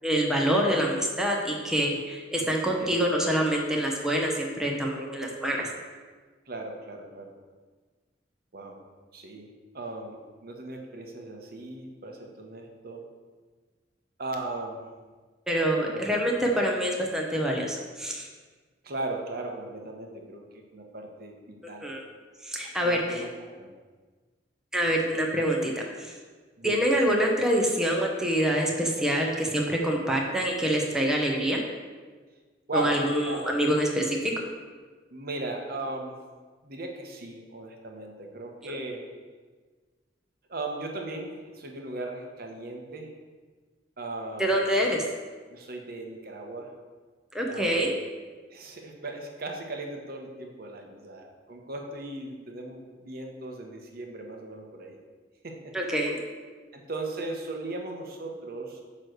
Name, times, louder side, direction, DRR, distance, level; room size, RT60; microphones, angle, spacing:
voice 1, 0.0-5.7 15.5-18.3 21.8-22.0 22.4-23.2 24.7-25.7 26.0-26.1 26.6-31.6 32.7-34.3 38.6-38.8 44.4-45.0 47.3-47.9 55.7-56.2, equal, 5° right, -1 dB, 0.9 m, -26 dB
voice 2, 2.8-3.1 6.5-7.3 8.5-8.8 9.1-9.5 9.7-10.2 10.4-13.0 14.2-14.8 15.9-16.0 18.8-21.9 22.8-23.3 23.6-23.7 24.8-25.0 26.6-26.9 32.7-33.5 35.1-36.2 36.6-39.2 40.5-43.1 44.0-45.0 45.5-46.7 47.5-47.9 48.5-55.0 55.4-55.7 56.7-58.8, right 2 dB, 55° right, 2 dB, 1.0 m, -37 dB
8.9 x 3.3 x 6.4 m, 1.4 s
head